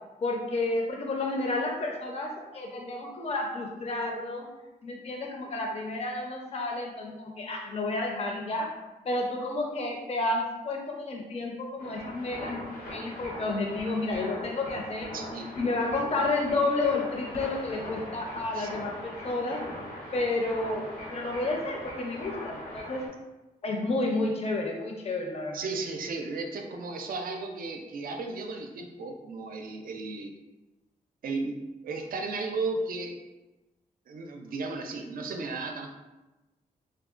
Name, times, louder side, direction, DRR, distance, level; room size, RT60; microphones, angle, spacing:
voice 1, 0.2-4.5 4.8-8.7 9.0-12.6 12.9-15.1 15.5-19.6 20.1-23.0 23.6-25.6, left 2 dB, 40° left, 1 dB, 0.5 m, -31 dB
sound 1, 11.8-23.1, left 1 dB, 85° left, 0.8 m, -40 dB
voice 2, 15.1-15.5 18.5-18.7 25.5-30.3 31.2-31.6 31.8-33.2 34.1-35.9, right 3 dB, 65° right, 3 dB, 0.4 m, -34 dB
3.6 x 2.1 x 2.4 m, 1.1 s
cardioid pair, 80°, 16 cm